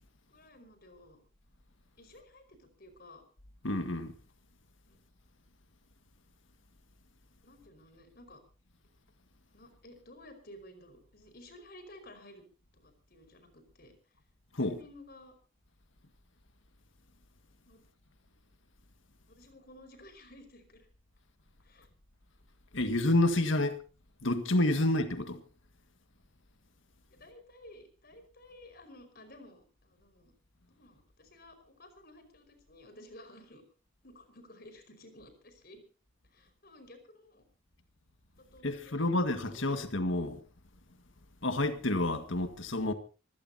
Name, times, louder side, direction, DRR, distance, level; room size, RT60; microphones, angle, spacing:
voice 1, 0.3-1.2 2.0-3.2 4.9-5.0 7.4-8.4 9.5-12.4 12.7-14.1 14.6-15.3 17.7-17.8 19.3-20.9 21.6-21.9 22.8-23.7 24.5-24.9 27.1-30.3 30.7-33.6 34.0-35.8 36.3-37.4 38.4-39.7, left 1 dB, 50° left, 5.1 m, -54 dB
voice 2, 3.6-4.1 14.5-14.8 22.7-23.7 24.2-25.4 38.6-40.4 41.4-42.9, left 1 dB, 70° left, 1.8 m, -29 dB
25.0 x 17.0 x 2.8 m
head